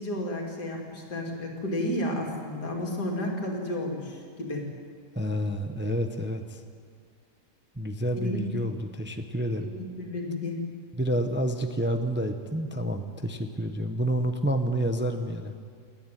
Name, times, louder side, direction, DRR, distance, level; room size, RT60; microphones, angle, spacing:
voice 1, 0.0-4.7 8.2-8.4 9.6-10.6, left 1 dB, 85° left, 0 dB, 3.4 m, -32 dB
voice 2, 5.2-6.6 7.8-9.7 11.0-15.5, equal, 10° right, 6 dB, 0.7 m, -29 dB
28.5 x 10.0 x 9.3 m, 2.1 s
omnidirectional pair, 1.7 m